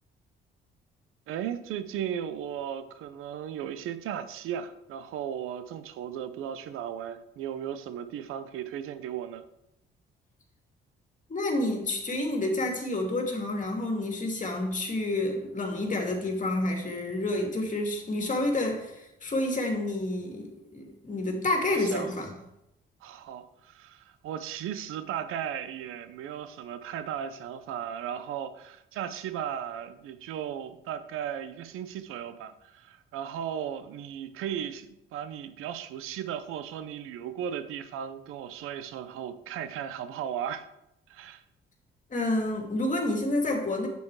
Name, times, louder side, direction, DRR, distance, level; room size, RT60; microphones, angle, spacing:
voice 1, 1.3-9.4 21.8-22.1 23.0-40.7 41.1-41.4, right 9 dB, 90° right, 0.9 m, -36 dB
voice 2, 11.3-22.3 42.1-43.9, left 2 dB, 35° left, 2.6 m, -29 dB
9.2 x 8.2 x 4.9 m
cardioid pair, 75°, 21 cm